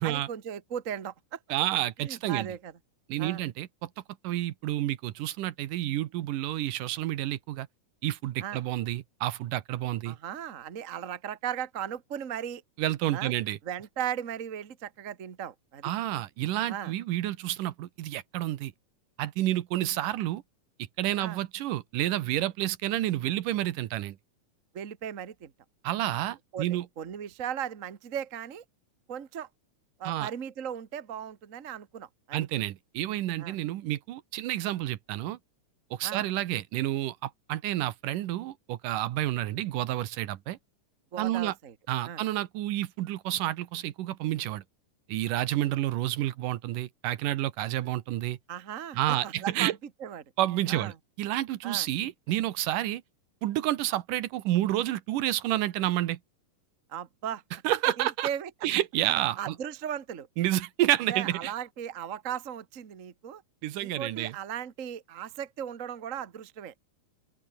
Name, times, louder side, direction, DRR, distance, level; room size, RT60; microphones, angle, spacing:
voice 1, 0.0-1.4 2.0-2.7 3.2-3.4 8.4-8.6 10.0-12.6 13.1-13.3 13.6-15.9 16.7-16.9 21.2-21.4 24.7-25.5 26.5-28.6 29.1-29.5 30.0-32.4 33.4-33.6 36.0-36.2 41.1-41.7 42.0-42.2 48.5-49.0 49.2-50.2 50.7-50.9 51.6-51.9 56.9-57.4 57.8-58.5 59.4-60.3 61.1-63.4 63.8-66.7, right 9 dB, 60° right, 0.8 m, -37 dB
voice 2, 1.5-2.5 3.1-3.9 4.2-7.7 8.0-10.2 12.8-13.6 15.8-18.7 19.2-20.4 21.0-24.2 25.8-26.9 30.1-30.3 32.3-35.4 35.9-40.6 41.2-41.5 41.9-44.6 45.1-48.4 49.0-49.7 50.4-53.0 53.4-56.2 57.6-58.3 58.6-59.6 60.4-61.5 63.6-64.4, right 14 dB, 85° right, 2.7 m, -29 dB
open air
omnidirectional pair, 3.7 m